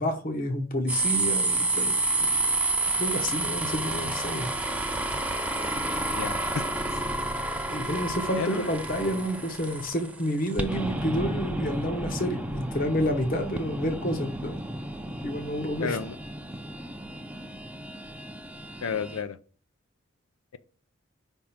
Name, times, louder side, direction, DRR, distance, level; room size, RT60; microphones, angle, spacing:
voice 1, 0.0-2.4 2.9-4.5 7.7-14.6 15.2-16.0, equal, 40° left, 5 dB, 0.9 m, -29 dB
sound 1, 0.9-19.2, right 2 dB, 5° right, 0.5 m, -30 dB
voice 2, 6.1-6.6 8.4-8.7 15.8-16.2 18.8-19.4, left 5 dB, 90° left, 13 dB, 0.5 m, -31 dB
5.3 x 3.6 x 5.8 m, 0.39 s
head